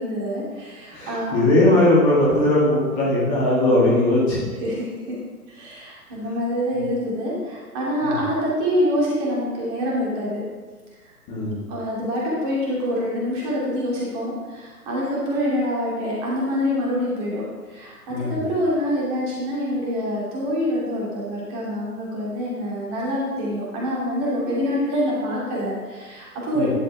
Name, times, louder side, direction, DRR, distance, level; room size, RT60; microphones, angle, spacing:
voice 1, 0.0-1.3 4.6-5.2 5.5-10.4 11.0-11.1 11.7-17.4 17.7-26.7, equal, 20° right, -5 dB, 2.7 m, -26 dB
voice 2, 0.9-4.4 6.7-6.8 8.0-8.1 11.3-11.5 18.1-18.3 26.5-26.7, left 1 dB, 15° left, -7 dB, 2.1 m, -19 dB
11.0 x 6.5 x 4.6 m, 1.4 s
figure-of-eight pair, 130°, 47 cm